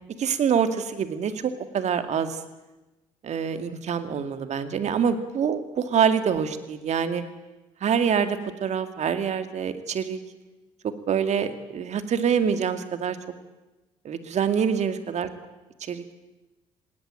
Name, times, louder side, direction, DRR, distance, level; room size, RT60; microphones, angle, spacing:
voice 1, 0.2-2.4 3.2-7.2 7.8-10.2 11.1-13.2 14.0-15.3 15.9-16.0, right 7 dB, 55° right, 9 dB, 2.2 m, -25 dB
20.0 x 18.0 x 9.0 m, 1.1 s
hypercardioid pair, 55°, 14 cm